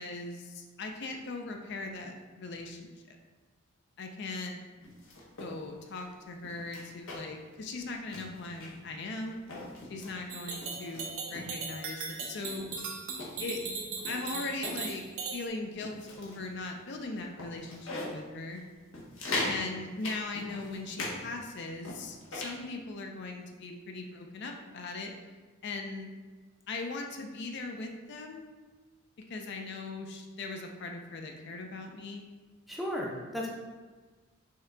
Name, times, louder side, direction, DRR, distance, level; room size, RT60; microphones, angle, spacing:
voice 1, 0.0-3.2 4.0-4.6 5.4-9.4 9.9-12.6 13.4-13.6 14.0-15.0 15.3-18.6 19.4-25.1 25.6-26.1 26.7-28.5 29.3-32.2, left 3 dB, 55° left, 3 dB, 0.4 m, -39 dB
sound 1, 4.8-5.5 5.9-6.0 6.4-7.4 7.7-7.8 8.1-8.9 9.3-10.1 10.6-11.5 12.1-12.2 12.6-14.8 15.2-15.4 15.8-16.5 16.9-17.0 17.4-18.2 18.5-18.6 18.9-19.6 20.0-21.2 21.4-22.6, left 2 dB, 70° left, 1.1 m, -39 dB
sound 2, 10.3-15.5, right 4 dB, 90° right, 0.7 m, -38 dB
voice 2, 32.7-33.5, left 1 dB, ahead, -3 dB, 0.5 m, -34 dB
5.5 x 2.2 x 3.7 m, 1.3 s
head